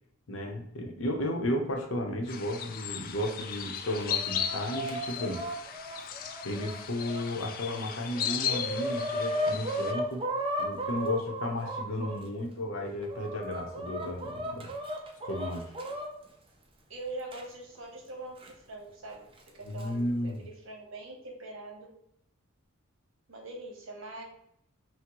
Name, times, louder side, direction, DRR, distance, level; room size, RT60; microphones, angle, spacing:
voice 1, 0.3-5.4 6.2-10.3 10.6-14.7 15.3-15.7 19.6-20.4, left 1 dB, 65° left, 3 dB, 0.7 m, -34 dB
sound 1, 2.3-9.9, left 8 dB, 45° left, 0.3 m, -36 dB
Chicken rooster, 3.8-7.2 7.8-7.9 8.1-12.2 12.8-16.1 17.3-17.4 18.4-18.5 19.5-19.8, equal, 25° right, 0.6 m, -35 dB
voice 2, 16.9-21.9 23.3-24.2, right 2 dB, 65° right, 1 dB, 1.0 m, -43 dB
5.8 x 2.1 x 3.0 m, 0.75 s
head